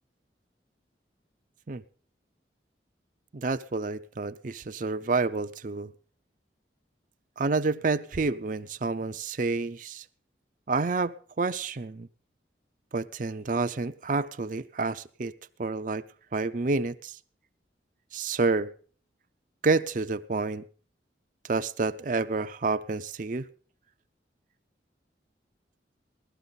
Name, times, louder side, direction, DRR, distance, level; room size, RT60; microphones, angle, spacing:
voice 1, 3.3-5.9 7.4-10.0 10.7-12.1 12.9-15.3 15.6-17.2 18.1-18.7 19.6-20.7 21.5-23.5, right 3 dB, 45° right, 0.5 m, -29 dB
17.0 x 13.0 x 4.0 m
head